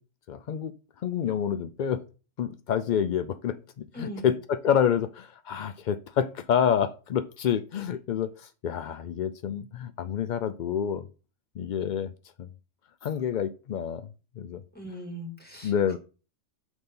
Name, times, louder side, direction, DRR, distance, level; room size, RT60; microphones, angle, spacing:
voice 1, 0.3-0.7 1.0-2.0 2.4-11.1 11.6-12.1 12.4-12.5 13.0-14.1 14.4-14.6 15.6-16.0, left 8 dB, 75° left, 0.4 m, -28 dB
voice 2, 3.9-4.3 14.7-16.0, equal, 5° left, 2.7 m, -40 dB
6.3 x 3.9 x 5.3 m
omnidirectional pair, 1.3 m